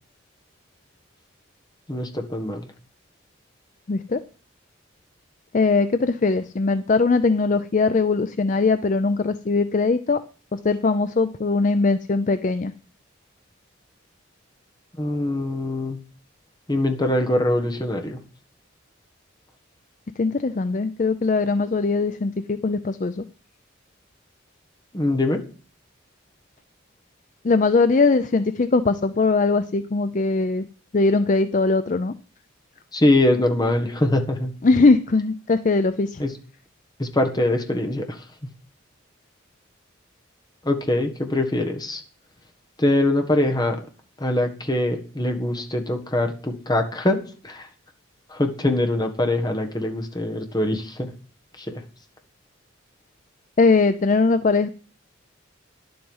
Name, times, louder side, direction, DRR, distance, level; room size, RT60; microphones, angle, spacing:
voice 1, 1.9-2.7 15.0-16.0 16.7-18.2 24.9-25.4 32.9-34.5 36.2-36.3 37.0-38.3 40.6-42.0 42.8-43.8 44.2-47.7 48.3-51.1 51.6-51.8, left 1 dB, 20° left, 4 dB, 1.5 m, -23 dB
voice 2, 3.9-4.2 5.5-10.2 10.5-12.7 20.2-23.2 27.4-30.6 30.9-32.1 34.6-36.2 53.6-54.7, left 3 dB, 40° left, 12 dB, 0.4 m, -20 dB
11.0 x 7.7 x 5.5 m, 0.39 s
head